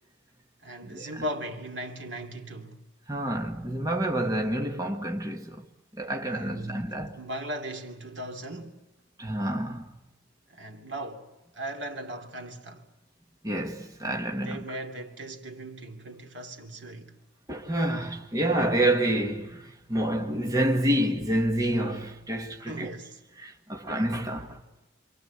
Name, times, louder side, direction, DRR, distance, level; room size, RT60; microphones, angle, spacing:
voice 1, 0.6-2.8 6.3-8.9 10.5-12.9 14.3-17.2 22.7-23.2, right 1 dB, 70° right, 2.8 m, -38 dB
voice 2, 3.1-5.6 6.0-7.2 9.2-9.8 13.4-14.6 17.5-22.9 23.4-24.6, right 1 dB, 20° right, 1.6 m, -28 dB
27.0 x 26.0 x 8.3 m
head